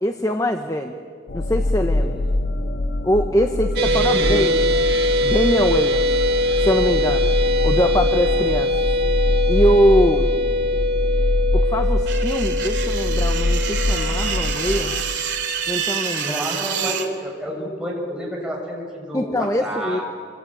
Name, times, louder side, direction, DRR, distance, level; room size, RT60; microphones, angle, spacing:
voice 1, 0.0-1.0 1.3-2.2 3.0-4.7 5.2-6.1 6.6-7.3 7.6-8.7 9.5-10.3 11.5-15.0 15.7-16.5 19.1-20.0, equal, 15° left, 6 dB, 1.0 m, -22 dB
sound 1, 1.3-15.0, left 1 dB, 60° left, 1.0 m, -23 dB
voice 2, 2.0-2.4 4.0-4.5 10.4-10.5 16.2-20.0, equal, 5° right, -2 dB, 6.5 m, -29 dB
sound 2, 3.8-16.1, left 1 dB, 55° right, 1.9 m, -23 dB
sound 3, 12.1-17.1, right 8 dB, 70° right, 2.8 m, -27 dB
26.5 x 26.0 x 8.7 m, 2.2 s
head